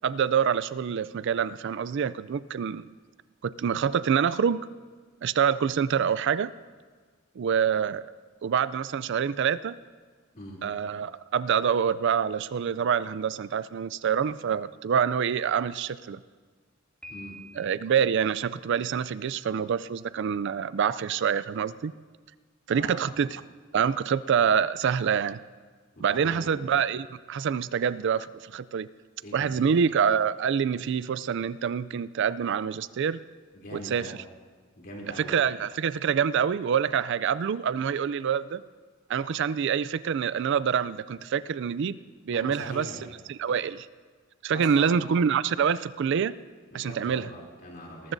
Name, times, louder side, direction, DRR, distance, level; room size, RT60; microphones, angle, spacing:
voice 1, 0.0-2.9 3.4-4.7 5.2-6.5 7.4-8.1 8.4-9.8 10.6-16.2 17.6-21.9 22.7-23.4 23.7-25.4 26.0-28.9 29.3-33.2 33.7-34.1 35.2-38.6 39.1-42.0 42.3-42.9 43.4-43.9 44.4-46.4 46.7-47.2, right 7 dB, 60° right, 17 dB, 0.4 m, -26 dB
Piano, 17.0-18.0, left 1 dB, 5° left, 2.4 m, -46 dB
voice 2, 22.7-23.1 25.9-26.5 29.2-29.8 33.5-34.1 34.8-35.4 42.3-43.0 44.5-45.1 46.7-48.1, equal, 45° left, -2 dB, 3.1 m, -41 dB
22.5 x 13.5 x 2.6 m, 1.5 s
head